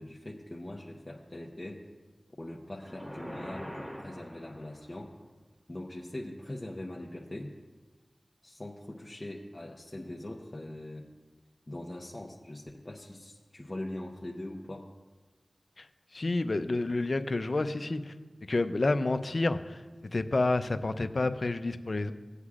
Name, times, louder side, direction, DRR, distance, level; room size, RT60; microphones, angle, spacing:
voice 1, 0.0-1.8 2.4-5.1 5.7-7.5 8.4-11.0 11.7-14.9, left 1 dB, 35° left, -2 dB, 0.9 m, -42 dB
sound 1, 2.8-5.1, equal, 15° right, 1.6 m, -43 dB
voice 2, 16.1-18.1 18.5-19.8 20.1-22.1, left 2 dB, 60° left, 10 dB, 0.5 m, -29 dB
18.0 x 8.1 x 2.5 m, 1.3 s
cardioid pair, 40°, 0 cm